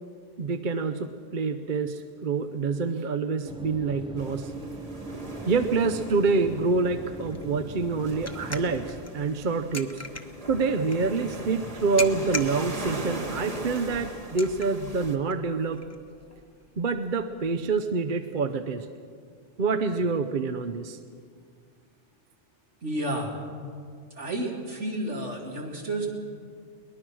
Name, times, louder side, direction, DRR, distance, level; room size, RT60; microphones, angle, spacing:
voice 1, 0.4-4.5 5.5-10.0 10.5-15.8 16.8-18.9 19.6-21.0, right 4 dB, 45° right, 8 dB, 0.9 m, -27 dB
sound 1, 3.4-9.0, right 2 dB, 5° right, 0.5 m, -40 dB
sound 2, 4.2-15.2, right 1 dB, 30° right, 1.6 m, -39 dB
sound 3, 6.5-17.8, left 2 dB, 15° left, 1.0 m, -42 dB
voice 2, 22.8-23.3 24.2-26.1, right 1 dB, 75° right, -1 dB, 3.3 m, -31 dB
23.0 x 19.5 x 6.2 m, 2.1 s
omnidirectional pair, 1.2 m